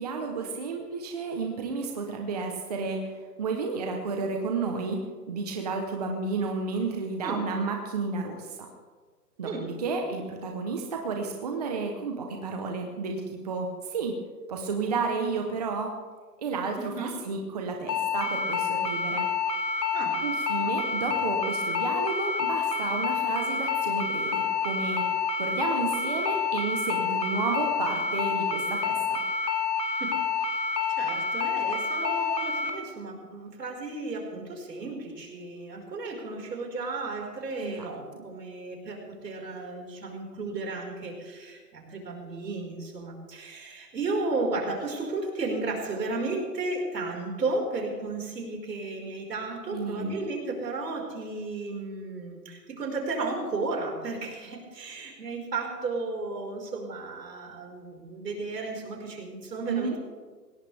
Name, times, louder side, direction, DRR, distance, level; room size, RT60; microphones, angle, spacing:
voice 1, 0.0-8.7 9.4-14.2 14.5-15.9 16.4-19.3 20.2-29.2 37.6-37.8 49.7-50.2 59.7-60.0, right 4 dB, 25° right, 3 dB, 0.9 m, -32 dB
voice 2, 9.4-9.8 16.7-17.1 19.9-20.2 20.6-20.7 29.8-60.0, right 3 dB, 75° right, 1 dB, 5.2 m, -34 dB
sound 1, 17.9-32.7, left 5 dB, 85° left, 2.7 m, -28 dB
21.0 x 17.5 x 3.5 m, 1.5 s
hypercardioid pair, 170°, 50 cm